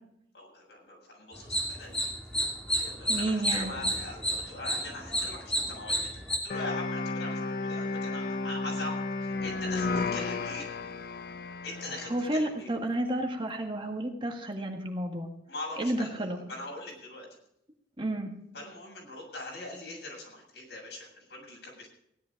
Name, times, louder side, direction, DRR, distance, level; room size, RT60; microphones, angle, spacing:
voice 1, 0.3-2.1 2.7-6.0 6.4-10.7 11.6-12.7 15.5-17.3 18.5-21.9, left 2 dB, 75° left, -1 dB, 7.3 m, -42 dB
sound 1, 1.3-6.4, equal, 5° left, 3.0 m, -30 dB
voice 2, 3.1-3.8 12.1-15.3 15.8-16.4 18.0-18.3, right 1 dB, 30° right, 2 dB, 1.8 m, -31 dB
sound 2, 6.5-12.4, left 3 dB, 55° left, 0.7 m, -33 dB
16.5 x 11.0 x 5.2 m, 0.74 s
head